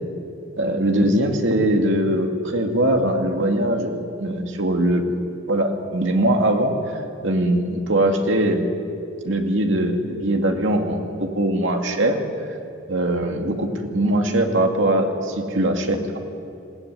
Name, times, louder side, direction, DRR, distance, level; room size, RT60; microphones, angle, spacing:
voice 1, 0.6-5.0 5.5-6.9 7.2-8.7 9.2-12.2 12.9-16.2, right 1 dB, 65° right, 3 dB, 2.4 m, -21 dB
20.5 x 17.0 x 9.5 m, 2.5 s
head